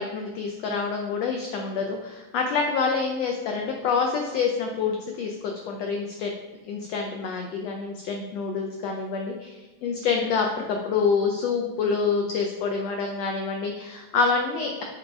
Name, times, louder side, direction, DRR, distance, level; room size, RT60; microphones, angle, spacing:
voice 1, 0.0-6.3 6.7-9.6 9.8-14.8, left 5 dB, 90° left, 2 dB, 1.4 m, -27 dB
7.8 x 4.1 x 4.6 m, 1.2 s
omnidirectional pair, 3.7 m